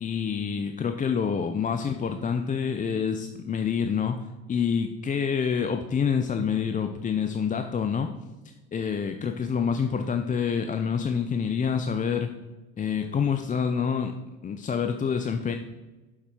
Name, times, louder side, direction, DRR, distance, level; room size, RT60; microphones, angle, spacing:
voice 1, 0.0-8.1 8.7-12.3 12.8-14.1 14.4-15.6, left 6 dB, 25° left, 6 dB, 0.5 m, -27 dB
7.0 x 6.6 x 4.4 m, 1.1 s
hypercardioid pair, 75°, 33 cm